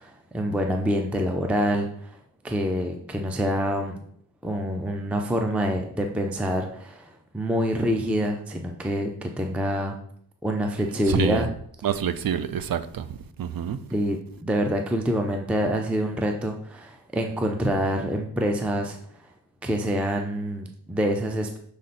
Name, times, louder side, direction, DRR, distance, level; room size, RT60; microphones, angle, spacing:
voice 1, 0.0-2.2 2.4-4.0 4.4-10.0 10.4-11.5 13.9-19.0 19.6-21.6, equal, 5° right, 0.4 m, -26 dB
voice 2, 11.1-11.5 11.8-13.9, right 9 dB, 55° right, 0.5 m, -27 dB
6.4 x 3.8 x 4.2 m
wide cardioid pair, 165°, 41 cm